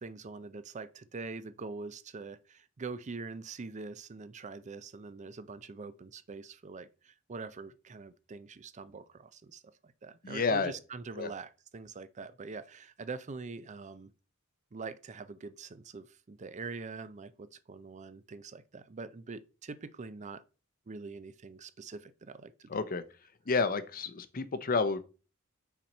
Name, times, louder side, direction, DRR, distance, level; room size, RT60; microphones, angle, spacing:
voice 1, 0.0-14.1 14.7-20.4 20.9-22.7, right 4 dB, 35° right, 0.5 m, -44 dB
voice 2, 10.2-10.7 11.2-11.3 22.7-23.0 23.5-25.0, left 4 dB, 45° left, 0.7 m, -30 dB
5.9 x 4.3 x 5.4 m
head